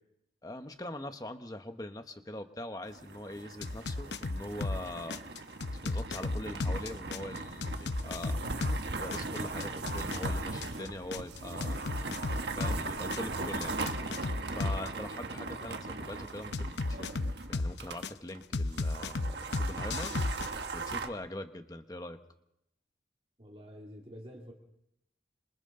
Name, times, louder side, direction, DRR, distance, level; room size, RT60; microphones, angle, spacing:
voice 1, 0.4-5.2 5.8-8.4 9.0-11.8 12.5-13.7 14.5-17.1 17.5-20.1 20.7-22.2, left 1 dB, 20° left, 7 dB, 1.2 m, -42 dB
sound 1, 2.8-18.0 18.3-18.4 18.7-21.1, right 3 dB, 75° right, 1.3 m, -39 dB
sound 2, 3.6-4.8 5.1-8.8 9.1-12.8 13.1-14.9 16.5-18.1 18.5-20.5, left 2 dB, 85° left, 0.8 m, -33 dB
voice 2, 23.4-24.5, equal, 30° right, 0 dB, 2.4 m, -48 dB
27.0 x 26.5 x 3.9 m, 0.81 s
head